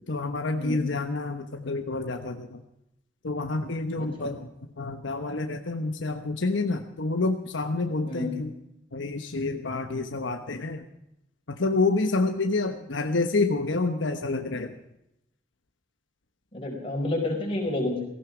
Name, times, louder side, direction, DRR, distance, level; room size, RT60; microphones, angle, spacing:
voice 1, 0.1-2.6 3.2-4.5 4.8-8.5 8.9-10.8 11.5-14.8, left 3 dB, 75° left, 6 dB, 1.1 m, -28 dB
voice 2, 8.1-8.4 16.5-18.1, left 2 dB, 30° left, 0 dB, 5.1 m, -29 dB
17.5 x 15.5 x 5.0 m, 0.84 s
head